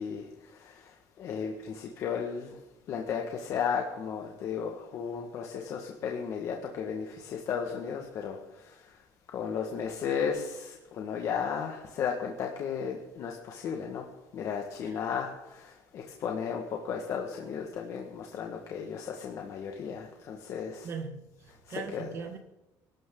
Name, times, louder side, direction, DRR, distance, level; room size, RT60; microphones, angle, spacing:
voice 1, 0.0-2.6 2.9-9.0 9.3-14.0 14.3-20.9 21.7-22.1, left 7 dB, 45° left, 2 dB, 1.6 m, -34 dB
voice 2, 20.8-22.4, right 5 dB, 35° right, 7 dB, 1.7 m, -39 dB
22.5 x 13.0 x 3.9 m, 1.0 s
cardioid pair, 175°, 7 cm